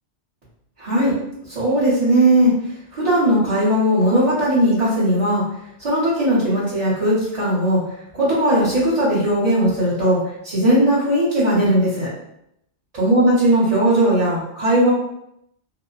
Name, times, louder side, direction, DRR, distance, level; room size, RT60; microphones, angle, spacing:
voice 1, 0.8-1.1 1.5-2.5 2.9-5.4 5.8-7.8 8.1-10.2 10.4-12.1 12.9-14.9, right 1 dB, 35° right, -14 dB, 1.1 m, -18 dB
2.7 x 2.1 x 2.4 m, 0.78 s
omnidirectional pair, 1.2 m